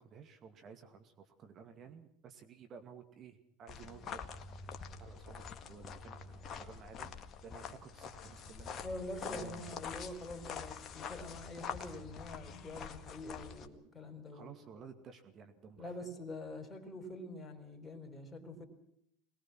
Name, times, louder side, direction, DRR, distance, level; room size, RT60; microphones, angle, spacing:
voice 1, 0.0-4.2 5.0-7.1 7.4-8.8 9.2-9.8 14.3-16.1, right 6 dB, 40° right, 7 dB, 2.3 m, -54 dB
sound 1, 3.7-13.7, left 6 dB, 40° left, 1.9 m, -46 dB
voice 2, 8.8-14.5 15.8-18.7, left 1 dB, 20° left, 7 dB, 4.4 m, -45 dB
23.0 x 20.5 x 6.2 m, 0.71 s
figure-of-eight pair, 75°, 0 cm